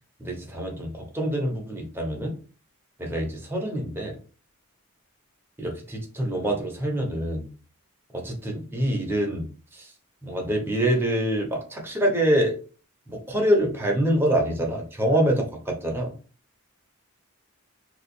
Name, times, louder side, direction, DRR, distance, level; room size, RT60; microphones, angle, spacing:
voice 1, 0.2-2.3 3.0-4.2 5.6-7.5 8.1-9.5 9.7-9.9 10.2-12.5 13.1-16.1, right 1 dB, 10° right, 0 dB, 0.8 m, -25 dB
2.9 x 2.5 x 4.1 m, 0.37 s
head